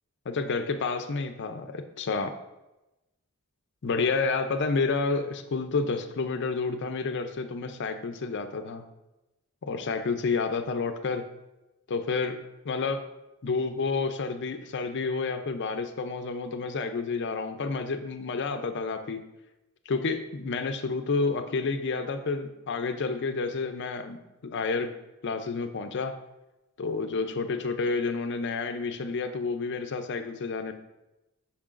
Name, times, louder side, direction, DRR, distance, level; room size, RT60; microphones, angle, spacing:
voice 1, 0.3-2.3 3.8-8.8 9.6-11.2 11.9-12.4 12.6-13.0 13.4-19.2 19.9-24.9 25.2-26.1 26.8-30.7, left 4 dB, 55° left, 8 dB, 0.5 m, -30 dB
8.5 x 5.7 x 2.5 m, 0.98 s
head